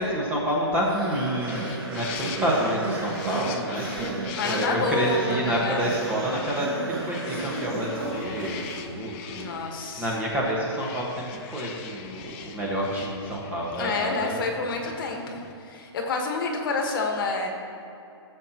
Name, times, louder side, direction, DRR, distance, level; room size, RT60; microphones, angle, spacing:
voice 1, 0.0-4.2 4.4-14.4, equal, 10° right, -3 dB, 1.5 m, -28 dB
sound 1, 0.7-9.2, right 3 dB, 50° right, 2.1 m, -34 dB
sound 2, 1.5-15.5, left 6 dB, 25° left, 0.6 m, -42 dB
voice 2, 4.3-5.8 9.4-10.1 13.8-17.5, left 3 dB, 50° left, 2 dB, 1.6 m, -28 dB
17.5 x 7.5 x 3.0 m, 2.7 s
hypercardioid pair, 155°, 15 cm